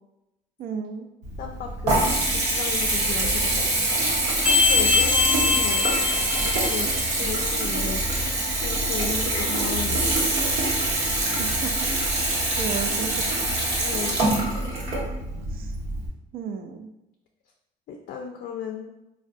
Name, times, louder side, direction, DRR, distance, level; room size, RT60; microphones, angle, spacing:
voice 1, 0.6-1.1 8.9-9.5 11.3-11.7 12.2-13.5 15.5-15.8 16.3-16.9, right 6 dB, 60° right, 6 dB, 0.4 m, -34 dB
Water tap faucet / Bathtub (filling or washing) / Trickle dribble, 1.2-16.1, right 2 dB, 90° right, 0.9 m, -25 dB
voice 2, 1.4-3.7 4.4-5.8 6.4-8.0 8.6-10.4 13.8-14.2 17.9-18.9, left 7 dB, 60° left, 2 dB, 0.4 m, -35 dB
sound 1, 4.4-7.0, left 5 dB, 15° right, 0.7 m, -22 dB
3.5 x 2.2 x 2.5 m, 0.90 s
cardioid pair, 110°, 17 cm